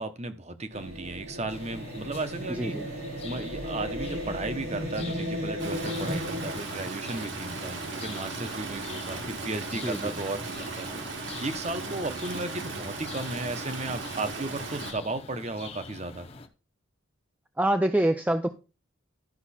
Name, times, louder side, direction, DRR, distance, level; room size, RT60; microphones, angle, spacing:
voice 1, 0.0-2.8 3.2-16.3, right 2 dB, 30° right, 9 dB, 1.0 m, -35 dB
sound 1, 0.7-6.6, equal, 90° right, 3.3 m, -35 dB
sound 2, 1.5-16.5, left 4 dB, 30° left, 0.9 m, -46 dB
voice 2, 2.5-2.9 6.0-6.2 9.8-10.1 17.6-18.5, right 1 dB, 5° right, 8 dB, 0.4 m, -26 dB
Stream, 5.6-14.9, right 3 dB, 60° right, 1.7 m, -37 dB
12.0 x 5.8 x 4.2 m, 0.32 s
head